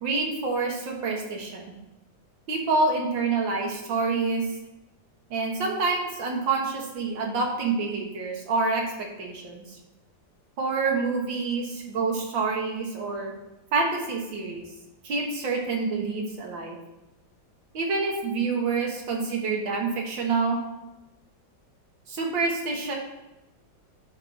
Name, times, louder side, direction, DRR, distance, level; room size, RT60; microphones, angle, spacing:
voice 1, 0.0-1.8 2.5-4.5 5.3-9.8 10.6-13.3 13.7-14.6 15.0-16.8 17.7-20.6 22.1-23.0, right 4 dB, 75° right, 0 dB, 2.1 m, -27 dB
11.5 x 4.4 x 4.3 m, 0.98 s
omnidirectional pair, 2.1 m